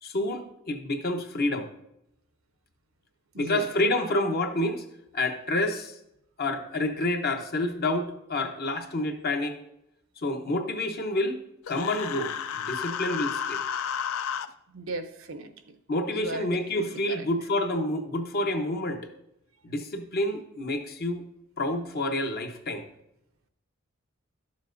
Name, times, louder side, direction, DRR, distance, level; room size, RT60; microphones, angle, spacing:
voice 1, 0.0-1.7 3.4-4.8 5.1-6.0 6.4-9.6 10.2-11.4 11.7-13.6 15.9-19.1 19.6-21.3 21.6-22.9, left 1 dB, 50° left, 6 dB, 0.8 m, -28 dB
voice 2, 3.3-3.7 14.7-15.5 16.1-17.3, right 2 dB, 75° right, 9 dB, 0.7 m, -37 dB
Human voice, 11.7-14.5, left 8 dB, 80° left, 0.4 m, -32 dB
11.5 x 7.2 x 2.6 m, 0.80 s
head